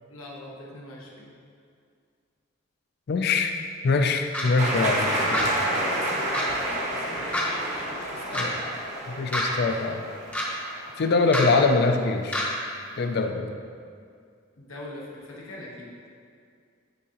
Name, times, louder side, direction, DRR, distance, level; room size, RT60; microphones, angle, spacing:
voice 1, 0.1-1.3 4.9-5.0 5.4-8.6 14.6-15.9, left 1 dB, 90° left, -4 dB, 1.0 m, -42 dB
voice 2, 3.1-3.6 3.8-5.6 8.3-8.5 9.1-10.0 11.0-12.4 13.0-13.5, left 3 dB, 50° left, 6 dB, 0.4 m, -23 dB
sound 1, 4.3-4.5 5.3-5.5 6.3-6.5 7.3-7.4 8.3-8.4 9.3-9.4 10.3-10.4 11.3-11.4 12.3-12.4, left 1 dB, 5° left, 0.6 m, -27 dB
sound 2, 4.6-11.2, right 1 dB, 35° right, 0.8 m, -29 dB
9.1 x 3.6 x 2.9 m, 2.2 s
head